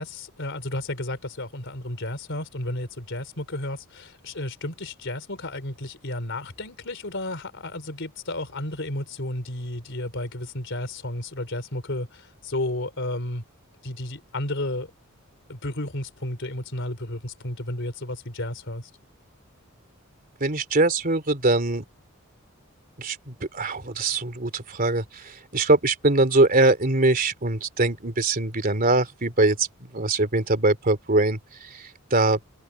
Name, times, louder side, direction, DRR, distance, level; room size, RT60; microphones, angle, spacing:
voice 1, 0.0-13.4 13.8-14.9 15.5-18.9, left 1 dB, 60° left, 4.0 m, -32 dB
voice 2, 20.4-21.8 23.0-29.7 29.9-32.4, right 2 dB, 40° right, 3.1 m, -22 dB
head